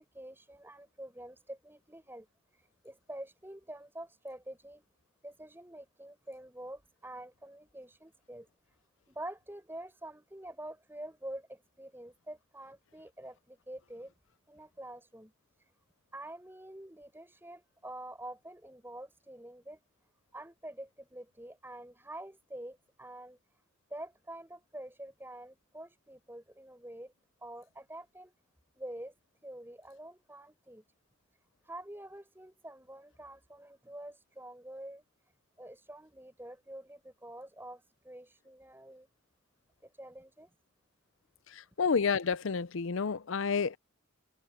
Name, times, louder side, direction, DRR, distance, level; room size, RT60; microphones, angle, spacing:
voice 1, 0.0-2.3 2.6-4.8 5.2-8.5 9.1-14.1 14.5-15.3 16.1-19.8 20.3-23.4 23.9-27.1 27.4-28.3 28.8-29.1 29.4-30.8 31.6-35.1 35.6-39.1 40.0-40.5, right 1 dB, 10° right, 5.2 m, -47 dB
voice 2, 41.5-43.8, left 5 dB, 70° left, 0.6 m, -30 dB
head